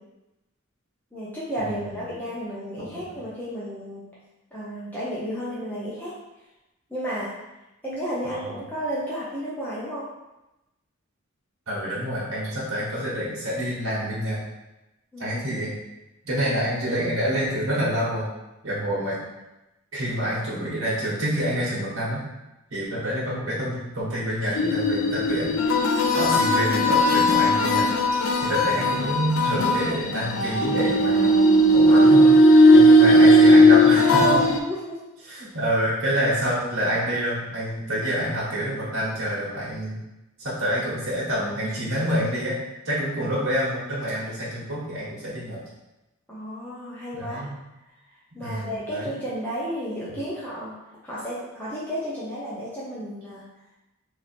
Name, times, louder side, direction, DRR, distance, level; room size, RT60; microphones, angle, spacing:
voice 1, 1.1-4.1 4.5-6.1 6.9-7.3 7.8-10.0 15.1-15.6 34.4-35.0 46.3-47.4 48.3-50.7 51.0-53.5, equal, 10° left, -9 dB, 0.6 m, -32 dB
voice 2, 2.8-3.2 8.4-8.6 11.7-14.4 15.2-15.7 16.2-18.3 18.6-19.2 19.9-22.2 22.7-25.6 26.2-27.9 28.4-31.3 31.7-32.3 32.7-34.4 35.2-40.0 40.4-42.6 42.8-45.6 47.1-47.6 48.4-49.1, equal, 75° right, -8 dB, 1.3 m, -27 dB
sound 1, 24.5-34.6, equal, 85° left, 0.5 m, -17 dB
2.8 x 2.8 x 4.2 m, 0.97 s
head